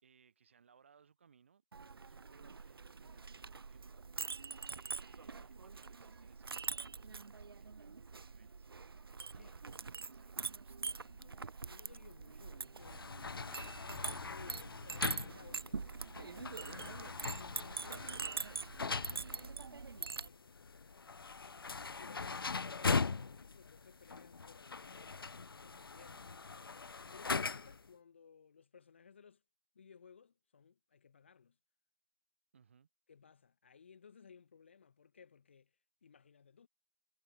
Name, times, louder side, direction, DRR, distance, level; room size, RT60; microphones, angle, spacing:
voice 1, 0.0-4.3 4.7-8.7 9.3-11.0 17.4-17.6 21.6-21.9 26.0-26.2 32.5-32.9, right 6 dB, 30° right, 5.3 m, -68 dB
Chink clink, 1.7-20.3, right 4 dB, 60° right, 0.6 m, -44 dB
voice 2, 10.9-16.9 17.3-26.1 26.5-26.7 27.1-29.4 29.7-31.6 33.1-36.7, left 6 dB, 25° left, 2.0 m, -61 dB
sound 1, 12.8-27.9, left 4 dB, 60° left, 0.7 m, -41 dB
hypercardioid pair, 175°, 14 cm